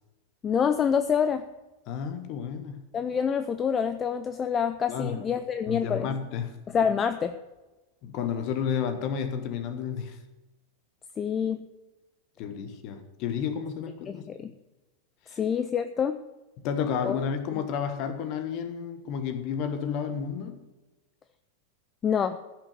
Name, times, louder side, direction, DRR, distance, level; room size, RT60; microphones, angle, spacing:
voice 1, 0.4-1.5 2.9-6.1 6.7-7.3 11.2-11.6 14.1-14.5 15.4-16.2 17.0-17.1 22.0-22.4, left 7 dB, 25° left, 10 dB, 0.5 m, -26 dB
voice 2, 1.9-2.9 4.9-5.2 5.7-6.5 8.0-10.2 12.4-14.3 15.3-15.4 16.6-20.6, left 7 dB, 40° left, 10 dB, 1.5 m, -31 dB
15.0 x 6.4 x 8.0 m, 1.1 s
figure-of-eight pair, 90°, 0 cm